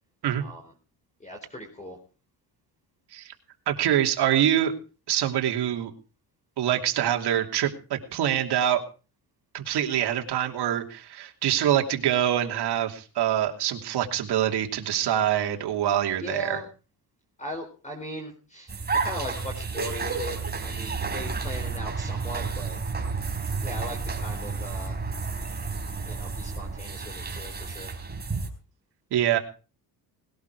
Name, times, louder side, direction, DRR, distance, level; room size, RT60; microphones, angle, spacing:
voice 1, 1.2-2.0 16.2-16.6 17.4-22.8 23.6-25.0 26.1-27.9, equal, 15° left, 2 dB, 4.4 m, -38 dB
voice 2, 3.7-4.7 5.1-5.9 6.6-8.8 9.5-16.6 29.1-29.4, right 11 dB, 70° right, 5 dB, 2.9 m, -25 dB
sound 1, 18.7-28.5, right 4 dB, 25° right, 4.1 m, -31 dB
20.5 x 12.0 x 4.8 m, 0.36 s
cardioid pair, 115°, 40 cm